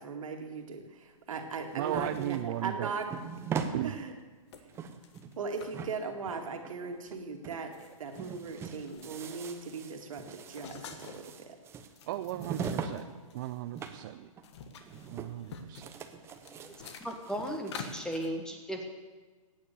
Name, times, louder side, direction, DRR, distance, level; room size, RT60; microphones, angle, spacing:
voice 1, 0.0-3.1 3.6-4.1 4.6-4.7 5.4-11.6, right 4 dB, 70° right, 4 dB, 2.2 m, -39 dB
sound 1, 1.0-1.1 1.3-3.3 3.8-4.0 4.5-5.7 6.3-6.5 7.1-7.2 7.5-9.4 9.7-11.3 11.7-13.9 14.2-18.3, left 5 dB, 55° left, 1.6 m, -49 dB
sound 2, 1.4-3.8 4.2-4.3 4.6-5.4 5.7-7.2 7.4-7.6 7.9-13.0 13.2-14.1 14.4-14.5 14.8-15.5 15.7-18.1, right 6 dB, 15° right, 0.8 m, -41 dB
voice 2, 1.7-2.9 3.7-3.9 12.0-14.3 14.9-15.9, right 15 dB, 35° right, 10 dB, 0.4 m, -36 dB
voice 3, 17.0-18.9, equal, 5° left, 3 dB, 1.3 m, -36 dB
16.0 x 9.4 x 6.8 m, 1.4 s
hypercardioid pair, 145°, 17 cm